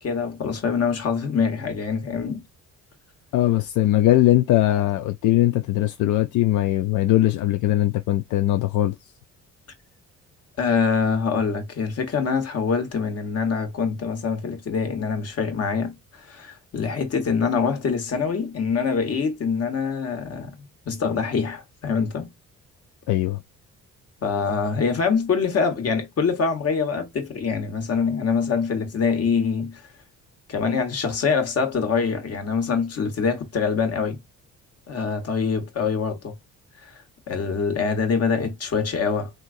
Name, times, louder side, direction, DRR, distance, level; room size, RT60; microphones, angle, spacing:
voice 1, 0.0-2.4 10.6-22.3 24.2-29.8 30.5-34.2 34.9-36.3 36.8-39.3, left 5 dB, 55° left, 1.4 m, -24 dB
voice 2, 3.3-8.9 23.1-23.4, left 14 dB, 80° left, 0.4 m, -20 dB
3.7 x 2.9 x 2.5 m
cardioid pair, 90°, 30 cm